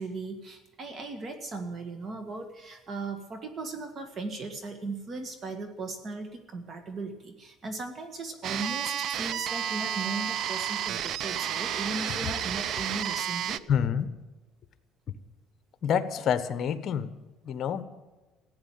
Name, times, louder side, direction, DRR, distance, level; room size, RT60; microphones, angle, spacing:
voice 1, 0.0-13.6, right 3 dB, 35° right, 7 dB, 1.9 m, -37 dB
sound 1, 8.4-13.6, right 9 dB, 55° right, 0.5 m, -31 dB
voice 2, 13.7-14.1 15.8-17.1 17.4-17.8, left 8 dB, 45° left, 12 dB, 1.2 m, -28 dB
16.0 x 9.5 x 9.2 m, 1.2 s
cardioid pair, 135°, 0 cm